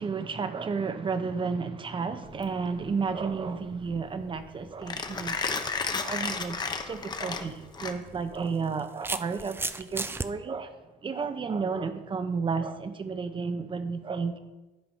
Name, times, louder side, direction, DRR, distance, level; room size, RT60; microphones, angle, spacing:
voice 1, 0.0-5.4 6.0-6.6 6.8-10.7 11.0-14.4, right 5 dB, 30° right, 10 dB, 0.8 m, -32 dB
Mechanisms, 2.3-8.4, left 4 dB, 25° left, 0.8 m, -34 dB
sound 1, 7.1-7.3 8.3-10.3, right 3 dB, 15° right, 0.4 m, -34 dB
11.0 x 4.8 x 5.6 m, 1.1 s
cardioid pair, 110°, 17 cm